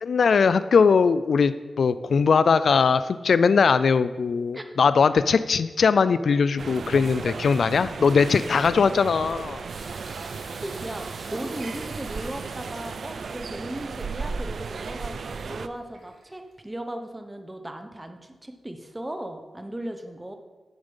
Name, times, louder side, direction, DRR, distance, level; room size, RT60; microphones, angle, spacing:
voice 1, 0.0-9.6, left 5 dB, 70° left, 14 dB, 0.3 m, -20 dB
sound 1, 6.6-15.7, right 5 dB, 65° right, 0.4 m, -35 dB
sound 2, 9.7-16.5, right 3 dB, 80° right, 2.4 m, -47 dB
voice 2, 10.6-20.3, right 1 dB, 15° right, 6 dB, 0.9 m, -37 dB
8.9 x 6.9 x 5.5 m, 1.3 s
wide cardioid pair, 125°, 0 cm